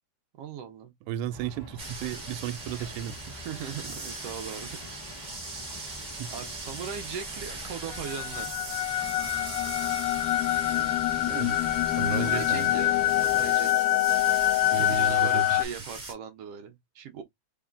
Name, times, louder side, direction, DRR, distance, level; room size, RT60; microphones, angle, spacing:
voice 1, 0.4-0.9 3.3-4.8 5.7-5.8 6.3-8.6 12.2-13.9 14.7-17.2, right 7 dB, 70° right, 1.6 m, -39 dB
voice 2, 1.1-3.2 5.7-5.8 6.2-6.3 10.7-10.9 11.3-11.6 12.0-12.7 14.7-15.4, right 10 dB, 90° right, 2.1 m, -34 dB
sound 1, 1.3-13.5, equal, 25° left, 0.4 m, -46 dB
sound 2, 1.8-16.1, right 2 dB, 25° right, 1.1 m, -40 dB
sound 3, 7.9-15.6, left 15 dB, 80° left, 2.0 m, -25 dB
4.7 x 3.5 x 2.4 m
omnidirectional pair, 3.6 m